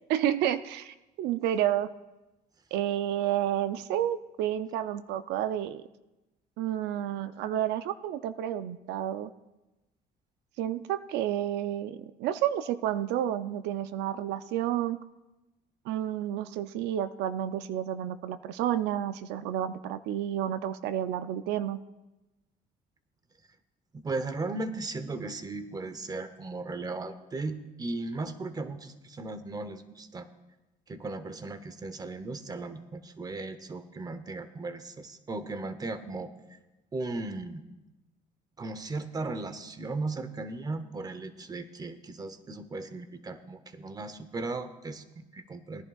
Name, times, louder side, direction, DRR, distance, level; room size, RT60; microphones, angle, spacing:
voice 1, 0.1-1.9 2.7-5.8 6.6-9.3 10.6-15.0 15.9-21.8, right 11 dB, 85° right, 12 dB, 0.5 m, -30 dB
voice 2, 23.9-30.3 30.9-36.3 36.9-37.6 38.6-45.8, right 3 dB, 25° right, 11 dB, 0.8 m, -36 dB
19.5 x 10.5 x 2.3 m, 1.0 s
cardioid pair, 110°, 17 cm